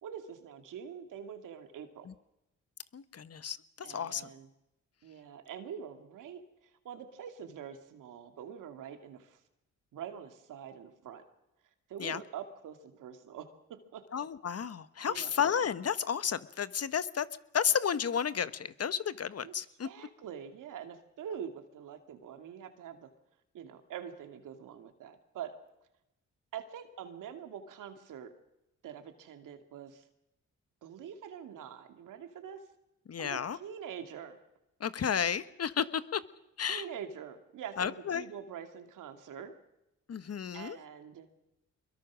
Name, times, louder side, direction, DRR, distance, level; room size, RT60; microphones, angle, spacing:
voice 1, 0.0-2.1 3.8-4.5 5.0-9.4 9.9-11.2 11.9-14.0 15.1-15.3 19.4-19.5 19.8-23.1 23.5-25.5 26.5-28.3 28.8-30.0 30.8-32.6 33.2-34.4 36.6-39.5 40.5-41.3, right 8 dB, 80° right, 7 dB, 2.5 m, -45 dB
voice 2, 2.9-4.3 12.0-12.2 14.1-17.3 17.5-19.9 33.1-33.6 34.8-36.2 36.6-36.8 37.8-38.2 40.1-40.8, left 7 dB, 50° left, 15 dB, 1.2 m, -32 dB
24.5 x 22.0 x 6.3 m, 0.89 s
supercardioid pair, 55°, 31 cm